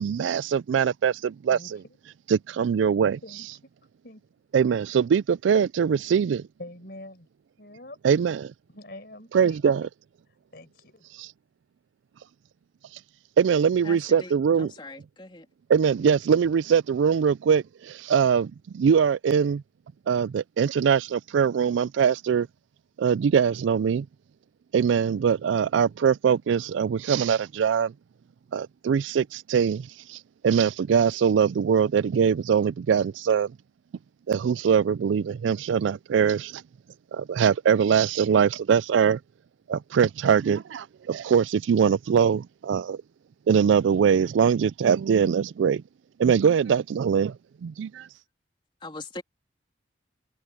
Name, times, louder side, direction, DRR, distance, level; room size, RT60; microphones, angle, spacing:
voice 1, 0.0-1.8 2.3-3.2 4.5-6.5 8.0-8.5 9.3-9.8 11.2-11.3 13.4-14.7 15.7-19.6 20.1-22.5 23.0-24.1 24.7-27.9 28.5-30.2 30.4-33.5 34.3-36.6 37.1-39.2 39.7-43.0 43.5-45.8 46.2-47.4 47.6-48.1, right 7 dB, 85° right, 0.3 m, -22 dB
voice 2, 1.5-2.0 3.2-3.5 4.0-4.2 6.6-7.3 7.6-8.0 8.7-9.7 10.5-11.0, left 1 dB, 55° left, 5.3 m, -44 dB
voice 3, 13.8-15.5 48.8-49.2, left 2 dB, 25° left, 2.9 m, -41 dB
head